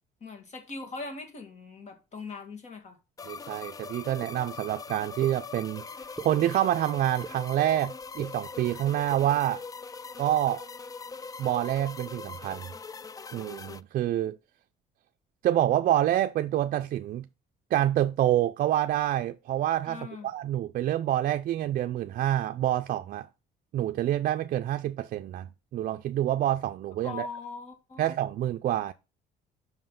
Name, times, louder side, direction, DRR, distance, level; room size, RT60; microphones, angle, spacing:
voice 1, 0.2-3.0 19.9-20.3 27.0-28.1, left 4 dB, 45° left, 2.1 m, -40 dB
sound 1, 3.2-13.8, left 5 dB, 20° left, 0.3 m, -42 dB
voice 2, 3.3-5.8 6.2-9.6 10.2-10.6 11.4-12.7 13.3-14.4 15.4-17.3 17.7-23.3 23.7-27.3 28.0-28.9, right 12 dB, 55° right, 0.4 m, -27 dB
sound 2, 4.2-4.3 5.2-5.3 5.9-6.3 7.0-7.3 8.0-8.3 9.0-9.2, right 4 dB, ahead, 1.3 m, -41 dB
5.7 x 5.5 x 5.8 m
cardioid pair, 110°, 17 cm